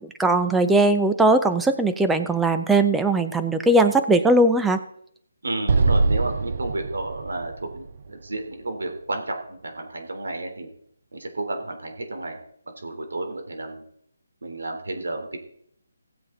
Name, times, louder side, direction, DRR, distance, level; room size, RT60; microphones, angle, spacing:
voice 1, 0.2-4.8, right 2 dB, 5° right, 8 dB, 0.4 m, -19 dB
voice 2, 5.4-10.7 11.1-12.4 12.8-13.8 14.4-15.4, right 2 dB, 80° right, 4 dB, 3.4 m, -31 dB
Explosion, 5.7-9.0, right 3 dB, 30° right, 0.7 m, -24 dB
18.0 x 7.7 x 3.9 m, 0.67 s
hypercardioid pair, 180°, 0 cm